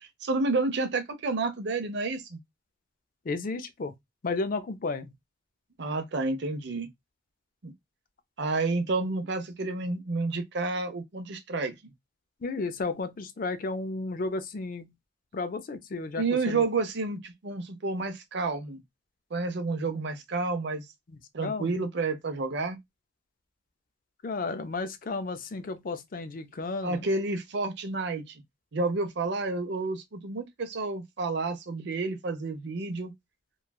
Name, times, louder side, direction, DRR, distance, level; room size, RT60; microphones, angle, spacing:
voice 1, 0.0-2.4 5.8-6.9 7.6-7.7 8.4-11.9 16.2-18.8 19.3-20.8 21.3-22.8 26.8-28.4 28.7-33.1, right 3 dB, 60° right, 0.6 m, -30 dB
voice 2, 3.3-3.9 4.2-5.1 12.4-14.9 15.3-16.6 21.1-21.7 24.2-27.1, left 3 dB, 45° left, 0.5 m, -33 dB
3.1 x 2.3 x 2.2 m
head